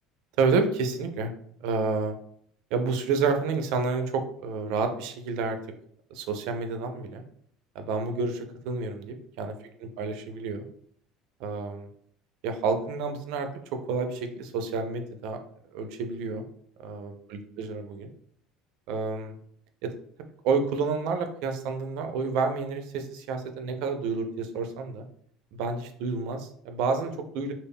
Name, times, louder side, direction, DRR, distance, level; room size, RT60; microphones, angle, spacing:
voice 1, 0.4-1.3 1.6-2.1 2.7-5.6 6.1-7.2 7.8-9.5 9.8-10.6 11.4-11.9 12.4-15.4 15.7-16.4 16.8-18.1 18.9-19.4 19.8-19.9 20.4-25.0 25.5-27.5, right 4 dB, 70° right, 6 dB, 0.3 m, -29 dB
2.1 x 2.0 x 3.5 m, 0.64 s
cardioid pair, 155°, 0 cm